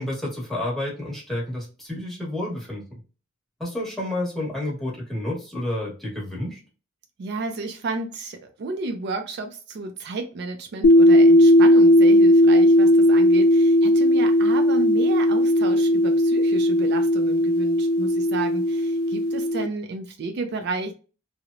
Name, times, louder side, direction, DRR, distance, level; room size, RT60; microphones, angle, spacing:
voice 1, 0.0-3.0 3.6-6.6, left 1 dB, ahead, 1.0 m, -30 dB
voice 2, 7.2-20.9, right 3 dB, 55° right, 0.4 m, -32 dB
sound 1, 10.8-19.7, left 1 dB, 90° left, 0.3 m, -17 dB
2.9 x 2.0 x 2.4 m
head